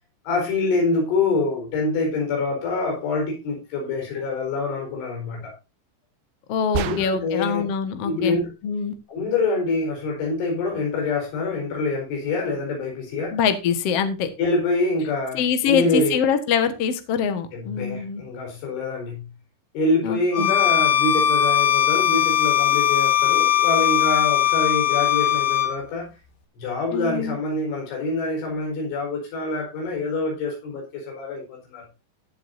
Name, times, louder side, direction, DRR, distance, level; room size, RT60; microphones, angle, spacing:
voice 1, 0.3-5.5 6.9-7.7 8.1-8.5 9.1-13.4 14.4-16.2 17.5-19.3 19.8-26.1 26.6-31.9, left 3 dB, 90° left, 7.1 m, -25 dB
voice 2, 6.5-8.4 8.6-8.9 13.3-14.3 15.3-18.2 20.0-20.5 26.9-27.4, left 7 dB, 70° left, 1.4 m, -24 dB
sound 1, 6.7-7.5, right 10 dB, 80° right, 3.1 m, -29 dB
Bowed string instrument, 20.3-25.7, left 11 dB, 50° left, 2.2 m, -19 dB
17.0 x 7.8 x 2.7 m
omnidirectional pair, 5.3 m